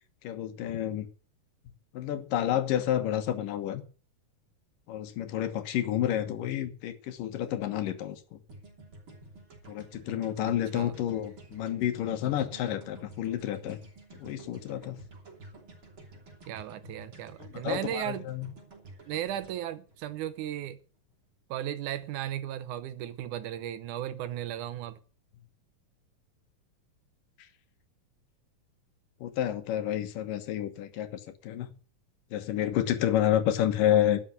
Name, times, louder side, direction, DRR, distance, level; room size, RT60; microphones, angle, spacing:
voice 1, 0.2-1.1 1.9-3.8 4.9-8.4 9.7-13.8 14.1-15.0 17.4-18.5 29.2-31.7 32.3-34.2, left 11 dB, 75° left, 2.9 m, -30 dB
sound 1, 8.5-20.7, right 2 dB, 35° right, 3.8 m, -51 dB
voice 2, 16.5-18.3 19.1-20.8 21.5-25.0, right 11 dB, 75° right, 2.1 m, -35 dB
12.0 x 7.3 x 8.1 m
omnidirectional pair, 3.9 m